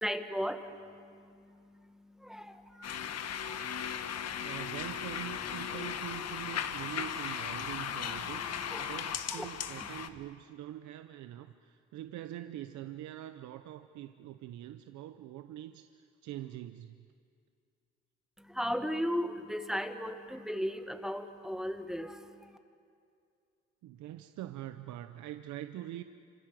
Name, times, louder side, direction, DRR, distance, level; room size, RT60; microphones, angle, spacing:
voice 1, 0.0-4.5 8.6-8.9 9.3-9.5 18.4-22.6, equal, ahead, 7 dB, 1.8 m, -37 dB
sound 1, 2.8-10.1, left 8 dB, 60° left, 1.4 m, -37 dB
voice 2, 4.4-17.1 23.8-26.0, right 13 dB, 75° right, 9 dB, 0.9 m, -44 dB
27.5 x 26.0 x 7.7 m, 2.4 s
supercardioid pair, 75°, 29 cm